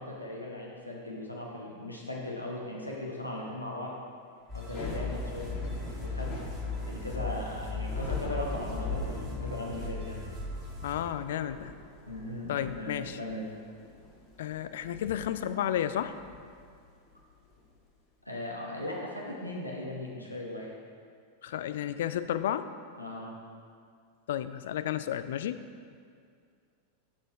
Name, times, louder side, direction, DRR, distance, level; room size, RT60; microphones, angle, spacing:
voice 1, 0.0-3.9 4.5-6.5 6.9-10.2 12.1-13.5 18.2-20.7 23.0-23.3, left 1 dB, 85° left, -3 dB, 1.0 m, -38 dB
sound 1, 4.5-10.9, left 3 dB, 30° right, 1.4 m, -37 dB
Thunder / Rain, 4.6-17.7, left 3 dB, 30° left, 1.4 m, -43 dB
voice 2, 10.8-11.7 12.5-13.2 14.4-16.1 21.4-22.7 24.3-25.6, left 10 dB, 55° left, 12 dB, 0.3 m, -32 dB
7.1 x 6.4 x 4.9 m, 2.2 s
figure-of-eight pair, 90°, 0 cm